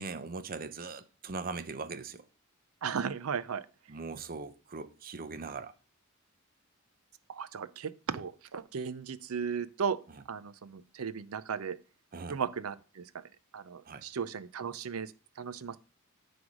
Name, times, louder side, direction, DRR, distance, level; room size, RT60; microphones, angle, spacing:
voice 1, 0.0-2.2 3.9-5.7 12.1-12.4 13.8-14.0, right 4 dB, 45° right, 0.7 m, -40 dB
voice 2, 2.8-3.7 7.3-10.0 10.3-11.8 12.3-13.2 13.5-15.8, right 6 dB, 85° right, 0.6 m, -36 dB
9.7 x 3.5 x 6.2 m
head